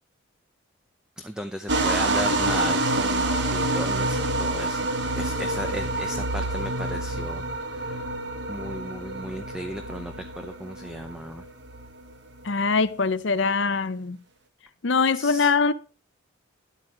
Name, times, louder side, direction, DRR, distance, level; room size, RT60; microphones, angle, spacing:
voice 1, 1.2-4.9 5.2-7.4 7.7-8.0 8.5-11.4 15.1-15.5, equal, 5° right, 0.6 m, -36 dB
sound 1, 1.7-12.5, right 2 dB, 55° right, 1.3 m, -27 dB
voice 2, 12.4-14.2 14.8-15.7, left 4 dB, 60° left, 0.7 m, -23 dB
11.0 x 8.3 x 4.9 m
head